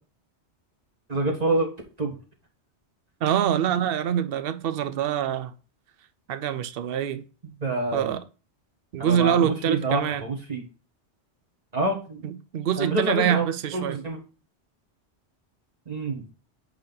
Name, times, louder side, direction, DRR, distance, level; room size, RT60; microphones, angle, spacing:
voice 1, 1.1-1.7 2.0-2.1 7.6-8.1 9.0-10.6 11.7-12.2 12.8-13.4 13.7-14.2 15.9-16.2, right 2 dB, 35° right, 1.5 m, -27 dB
voice 2, 3.2-5.5 6.3-7.2 7.9-8.2 8.9-10.2 12.2-14.0, right 9 dB, 60° right, 0.8 m, -25 dB
8.0 x 3.5 x 3.9 m
omnidirectional pair, 1.2 m